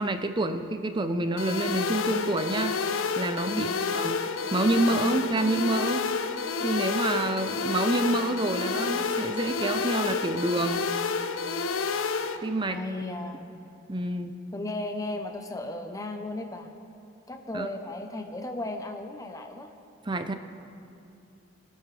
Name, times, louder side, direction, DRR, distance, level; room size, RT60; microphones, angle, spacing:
voice 1, 0.0-2.7 3.2-3.7 3.9-4.2 4.5-6.1 6.6-10.8 12.4-12.8 13.9-14.3 17.5-17.7 20.1-20.3, right 2 dB, 20° right, 8 dB, 0.5 m, -27 dB
sound 1, 1.4-12.4, left 5 dB, 80° left, 0.6 m, -29 dB
voice 2, 3.5-3.8 12.7-13.6 14.5-16.7 17.3-19.7, left 2 dB, 15° left, 4 dB, 0.7 m, -35 dB
24.5 x 9.8 x 3.3 m, 2.7 s
head